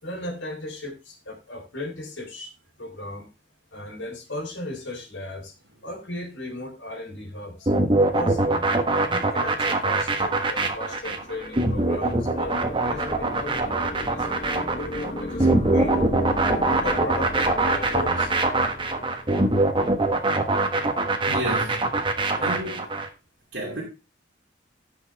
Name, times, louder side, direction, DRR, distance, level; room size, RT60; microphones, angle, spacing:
voice 1, 0.0-2.5 2.8-3.3 3.7-5.5 5.8-16.0 16.5-18.3, left 2 dB, 85° left, 3.8 m, -36 dB
sound 1, 7.7-23.1, right 2 dB, 25° right, 1.2 m, -23 dB
sound 2, 9.8-19.8, left 1 dB, 35° left, 1.1 m, -36 dB
voice 2, 21.3-21.8 22.4-22.9 23.5-23.8, right 1 dB, 65° right, 2.5 m, -31 dB
15.5 x 5.9 x 3.4 m
head